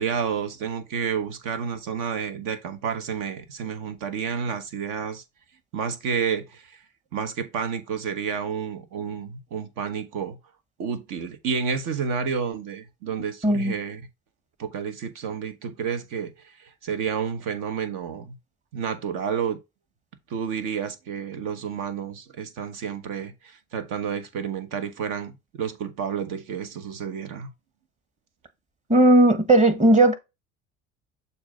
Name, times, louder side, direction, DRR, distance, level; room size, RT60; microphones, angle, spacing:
voice 1, 0.0-5.2 5.7-6.8 7.1-10.4 10.8-14.1 14.6-18.4 18.7-19.6 20.3-27.5, right 7 dB, 65° right, 1.2 m, -30 dB
voice 2, 13.4-13.7 28.9-30.1, right 1 dB, 20° right, 1.3 m, -16 dB
7.0 x 2.8 x 5.2 m
hypercardioid pair, 70°, 35 cm